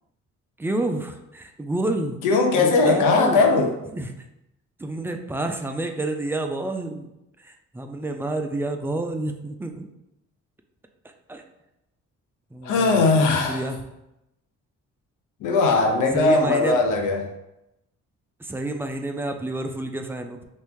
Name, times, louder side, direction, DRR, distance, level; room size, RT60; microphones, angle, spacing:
voice 1, 0.6-2.2 2.5-3.4 3.9-4.1 4.8-7.1 7.4-9.9 11.3-11.4 12.5-13.0 13.5-13.8 16.1-16.8 18.4-20.4, right 2 dB, 10° right, 5 dB, 0.3 m, -29 dB
voice 2, 2.2-3.7 12.6-13.7 15.4-17.3, left 3 dB, 90° left, 2 dB, 0.7 m, -19 dB
3.0 x 2.6 x 3.5 m, 0.88 s
cardioid pair, 90°, 30 cm